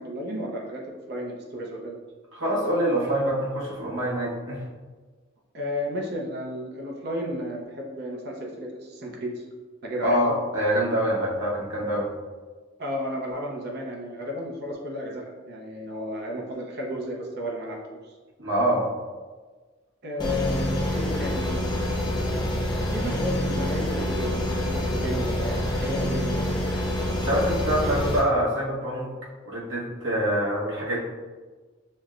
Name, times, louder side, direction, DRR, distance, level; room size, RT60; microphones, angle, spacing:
voice 1, 0.0-2.0 5.5-9.4 9.8-10.2 12.8-18.2 20.0-21.6 22.9-26.5, equal, 55° right, -1 dB, 0.6 m, -33 dB
voice 2, 2.3-4.6 10.0-12.1 18.4-18.9 27.2-29.1 29.4-31.0, equal, 70° right, -5 dB, 1.1 m, -25 dB
sound 1, 20.2-28.2, left 1 dB, 20° left, 0.5 m, -27 dB
6.4 x 2.1 x 2.4 m, 1.4 s
head